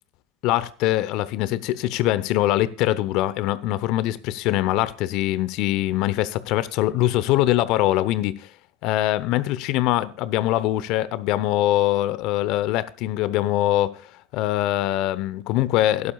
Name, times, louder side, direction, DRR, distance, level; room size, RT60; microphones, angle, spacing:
voice 1, 0.4-8.5 8.8-14.0 14.3-16.1, left 15 dB, 55° left, 0.8 m, -23 dB
17.5 x 11.0 x 2.4 m
hypercardioid pair, 80°, 0 cm